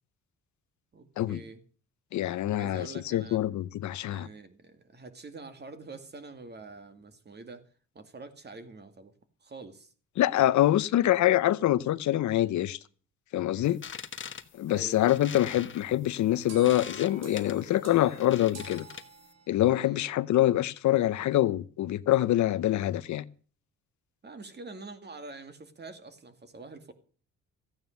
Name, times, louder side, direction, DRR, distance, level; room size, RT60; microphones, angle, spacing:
voice 1, 0.9-1.6 2.5-3.4 4.1-7.7 7.9-9.1 9.4-9.9 13.5-13.8 14.7-15.0 19.6-20.0 24.2-26.9, right 3 dB, 35° right, 2.4 m, -46 dB
voice 2, 2.1-4.3 10.2-12.8 13.3-13.8 14.5-18.9 19.5-23.2, left 13 dB, 70° left, 0.7 m, -25 dB
sound 1, 13.7-19.3, left 7 dB, 40° left, 1.3 m, -43 dB
sound 2, 16.5-19.8, right 4 dB, 60° right, 2.8 m, -48 dB
14.5 x 9.4 x 6.6 m
cardioid pair, 90°, 30 cm